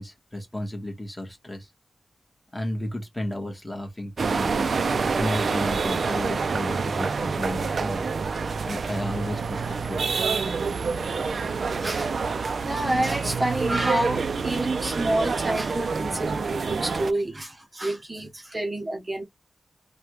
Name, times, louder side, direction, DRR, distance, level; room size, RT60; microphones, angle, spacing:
voice 1, 0.0-1.7 2.5-4.7 5.2-8.0 8.7-10.1, left 1 dB, 15° left, 1.1 m, -33 dB
sound 1, 4.2-17.1, right 5 dB, 65° right, 0.4 m, -27 dB
voice 2, 11.8-19.2, right 1 dB, 25° right, 0.7 m, -28 dB
3.4 x 2.2 x 2.9 m
wide cardioid pair, 125°, 0 cm